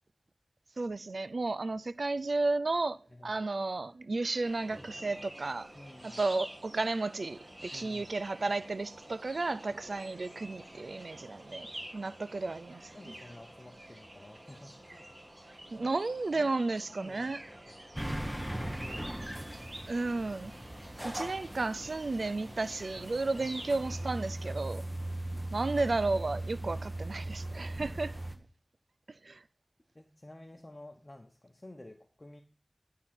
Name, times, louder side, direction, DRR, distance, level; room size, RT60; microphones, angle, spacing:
voice 1, 0.8-5.7 6.0-13.1 15.7-17.4 19.9-20.5 21.0-24.8 25.5-28.2 29.2-29.4, right 3 dB, 85° right, 0.4 m, -33 dB
sound 1, 4.4-24.3, right 1 dB, 40° right, 2.2 m, -49 dB
voice 2, 5.7-6.2 7.7-8.0 12.9-15.1 15.5-16.0 16.3-16.5 16.9-18.2 18.5-19.9 23.3-23.5 25.0-25.1 26.6-26.7 27.5-27.7 29.9-32.4, left 1 dB, 35° left, 1.0 m, -52 dB
sound 2, 17.9-28.4, right 1 dB, 10° right, 1.2 m, -39 dB
11.0 x 3.8 x 5.9 m
wide cardioid pair, 60°, 0 cm